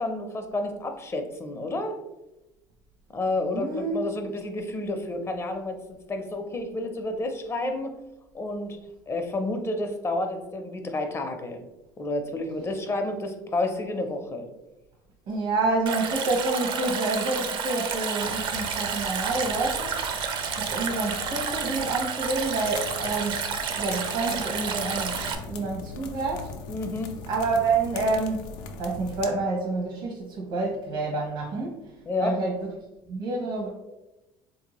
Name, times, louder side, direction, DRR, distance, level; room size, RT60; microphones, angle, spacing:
voice 1, 0.0-1.9 3.1-5.8 6.1-7.9 8.3-8.8 9.1-11.6 12.0-14.5 26.7-27.2 32.1-32.4, left 2 dB, 25° left, 6 dB, 0.5 m, -30 dB
voice 2, 3.5-4.0 15.3-19.9 20.6-23.4 23.8-26.5 27.3-31.8 32.2-32.7 33.1-33.7, right 3 dB, 70° right, -2 dB, 0.8 m, -28 dB
Stream, 15.9-25.4, right 6 dB, 50° right, 0.5 m, -30 dB
sound 1, 18.2-29.3, left 4 dB, 85° left, 0.4 m, -41 dB
3.5 x 2.6 x 2.9 m, 0.99 s
supercardioid pair, 95°, 11 cm